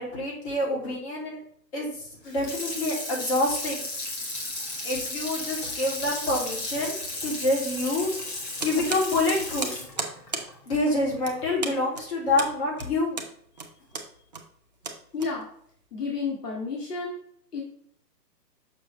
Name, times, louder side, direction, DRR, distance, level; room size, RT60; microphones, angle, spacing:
voice 1, 0.0-1.4 1.7-1.9 2.2-3.9 4.8-7.0 7.2-8.1 8.6-9.8 10.7-13.2, left 2 dB, 40° left, -3 dB, 2.8 m, -27 dB
Water tap faucet / Sink (filling or washing), 2.2-11.4 11.8-11.9, left 2 dB, 20° left, 1.1 m, -34 dB
sound 1, 8.6-15.8, right 4 dB, 25° right, 0.5 m, -36 dB
voice 2, 15.1-15.5 15.9-17.2 17.5-17.6, left 4 dB, 65° left, -2 dB, 1.7 m, -31 dB
6.3 x 6.0 x 3.2 m, 0.66 s
figure-of-eight pair, 140°, 50 cm